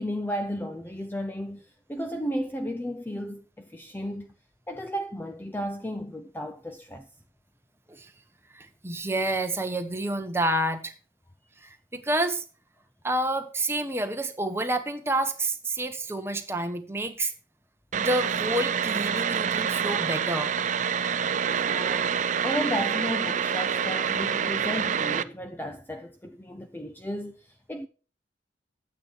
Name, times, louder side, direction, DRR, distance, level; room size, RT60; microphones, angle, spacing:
voice 1, 0.0-4.3 4.7-7.1 21.5-27.9, equal, 10° left, 0.5 m, -34 dB
voice 2, 8.5-10.9 11.6-12.4 13.0-17.3 17.9-20.5, right 1 dB, 15° right, 1.2 m, -29 dB
sound 1, 17.9-25.2, right 7 dB, 40° right, 0.5 m, -27 dB
10.5 x 8.7 x 4.6 m
head